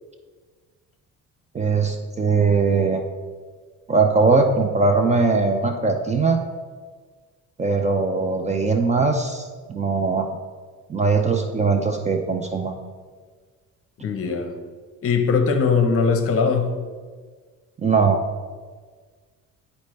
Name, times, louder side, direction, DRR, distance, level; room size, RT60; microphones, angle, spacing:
voice 1, 1.5-3.0 3.9-6.4 7.6-10.3 10.9-12.7 17.8-18.2, right 4 dB, 20° right, 4 dB, 0.4 m, -20 dB
voice 2, 14.0-14.6 15.0-16.7, left 5 dB, 45° left, 6 dB, 0.8 m, -20 dB
10.5 x 4.2 x 3.2 m, 1.5 s
cardioid pair, 135°, 32 cm